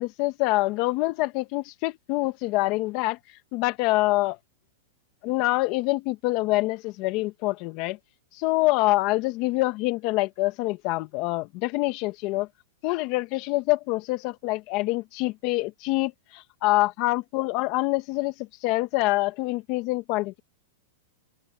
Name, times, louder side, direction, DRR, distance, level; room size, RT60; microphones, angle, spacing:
voice 1, 0.0-3.2 3.5-4.4 5.2-8.0 8.3-12.5 12.8-18.3 18.6-20.4, left 20 dB, 40° left, 1.0 m, -25 dB
supercardioid pair, 155°, 0 cm